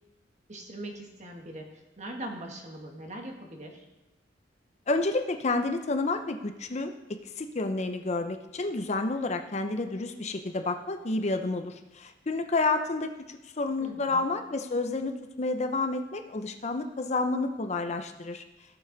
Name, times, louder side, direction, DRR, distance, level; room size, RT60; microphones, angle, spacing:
voice 1, 0.5-3.8 13.8-14.3, right 1 dB, 40° right, 2 dB, 1.6 m, -41 dB
voice 2, 4.9-18.4, left 3 dB, 35° left, 7 dB, 0.6 m, -30 dB
16.5 x 6.6 x 4.0 m, 1.0 s
head